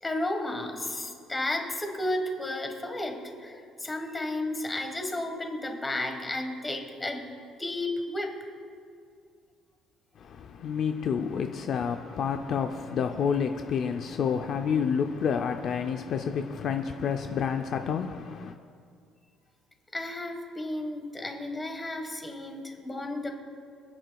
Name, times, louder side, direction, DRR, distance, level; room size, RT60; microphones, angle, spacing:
voice 1, 0.0-7.2 7.6-8.5 19.9-23.3, left 1 dB, 15° left, 1.4 m, -33 dB
voice 2, 10.2-18.5, left 7 dB, 50° left, 0.5 m, -29 dB
27.5 x 9.2 x 2.3 m
cardioid pair, 135°, 0 cm